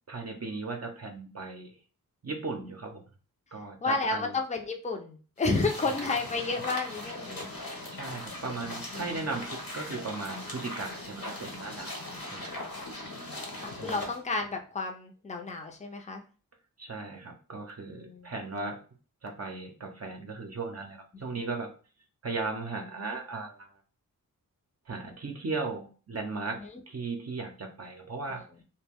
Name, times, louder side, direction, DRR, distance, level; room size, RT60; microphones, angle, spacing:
voice 1, 0.1-1.7 2.2-3.0 3.5-4.4 7.9-12.6 13.7-14.1 16.8-18.8 19.2-21.7 22.2-23.7 24.9-26.6 26.9-28.4, right 3 dB, 45° right, 2 dB, 0.6 m, -37 dB
voice 2, 3.5-7.8 8.9-9.3 13.6-16.2 17.9-18.3 26.4-26.8 28.3-28.4, left 3 dB, 20° left, 3 dB, 0.6 m, -32 dB
sound 1, 5.4-14.2, left 1 dB, 70° left, 1.1 m, -40 dB
2.2 x 2.2 x 3.4 m, 0.37 s
cardioid pair, 45°, 36 cm